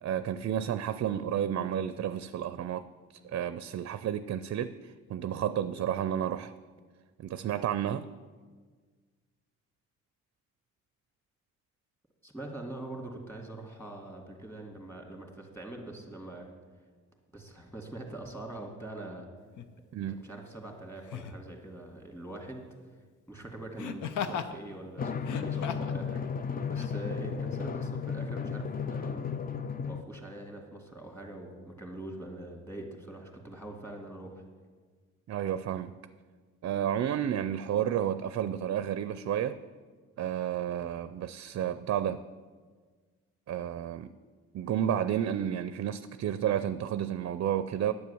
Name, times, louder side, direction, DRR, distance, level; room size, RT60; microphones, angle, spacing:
voice 1, 0.0-2.9 3.2-6.5 7.2-8.1 19.9-20.2 35.3-35.9 36.6-39.6 40.2-42.2 43.5-44.1 44.5-47.9, right 10 dB, 50° right, 13 dB, 0.5 m, -31 dB
voice 2, 12.2-16.5 17.3-19.3 20.2-22.6 23.3-26.2 26.7-29.3 29.8-34.4, right 2 dB, 5° left, 2 dB, 2.3 m, -43 dB
Laughter, 19.6-19.7 21.1-21.4 23.8-24.5 25.2-26.0 26.7-26.9, left 7 dB, 80° left, 0.8 m, -36 dB
Drum, 25.0-30.0, left 6 dB, 30° left, 0.5 m, -34 dB
9.4 x 8.3 x 7.0 m, 1.5 s
cardioid pair, 90°, 30 cm